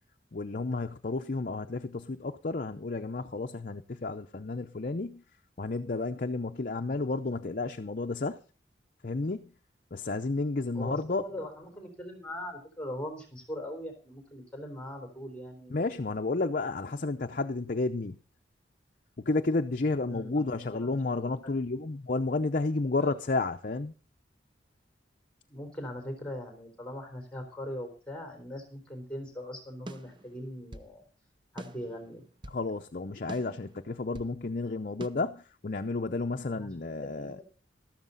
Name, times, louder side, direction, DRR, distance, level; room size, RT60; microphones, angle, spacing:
voice 1, 0.3-5.2 5.6-8.4 9.0-9.5 9.9-11.2 15.7-18.2 19.2-23.9 32.5-37.4, left 3 dB, 50° left, 0.7 m, -31 dB
voice 2, 10.7-15.8 20.1-20.9 23.0-23.1 25.5-31.0 31.5-32.2 36.5-37.4, left 1 dB, 5° left, 3.7 m, -41 dB
sound 1, 29.9-30.9 31.6-32.7 33.3-34.4 35.0-35.1, right 1 dB, 25° right, 0.8 m, -45 dB
13.5 x 13.0 x 4.0 m
head